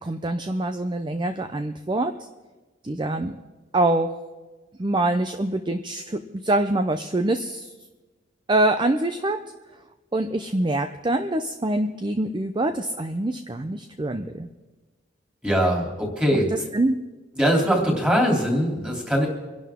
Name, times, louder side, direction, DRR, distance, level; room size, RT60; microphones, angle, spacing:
voice 1, 0.0-2.1 2.8-3.3 3.7-4.1 4.8-7.7 8.5-9.4 10.1-14.5 16.7-17.0, right 2 dB, 25° right, 8 dB, 0.6 m, -24 dB
voice 2, 15.4-16.5 17.4-19.3, equal, 5° right, 0 dB, 3.1 m, -21 dB
26.0 x 11.5 x 3.6 m, 1.3 s
head